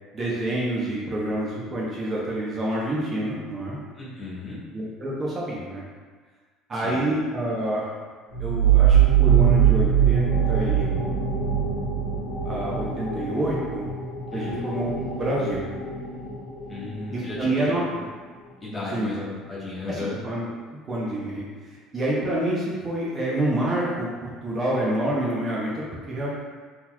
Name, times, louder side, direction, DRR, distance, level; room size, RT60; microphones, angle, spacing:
voice 1, 0.1-3.8 4.7-5.8 6.7-7.9 8.4-11.0 12.4-13.9 14.3-15.7 17.1-17.8 18.9-19.1 19.9-20.5 20.7-21.5 21.9-26.3, right 1 dB, 30° right, -6 dB, 0.7 m, -27 dB
voice 2, 3.9-4.6 6.8-7.0 14.3-14.6 16.7-18.0 18.6-20.2, left 3 dB, 25° left, -8 dB, 1.3 m, -34 dB
sound 1, 8.3-17.7, right 8 dB, 75° left, 0.9 m, -22 dB
3.8 x 2.9 x 2.3 m, 1.5 s
cardioid pair, 120°, 0 cm